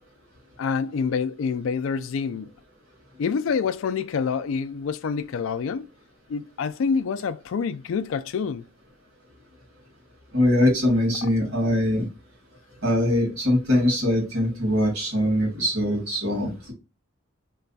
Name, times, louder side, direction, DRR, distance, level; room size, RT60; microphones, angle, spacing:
voice 1, 0.6-2.5 3.2-5.9 6.3-8.6, left 5 dB, 75° left, 0.3 m, -27 dB
voice 2, 10.3-12.0 12.8-16.7, left 1 dB, 90° right, 1.8 m, -22 dB
3.2 x 2.3 x 4.0 m
head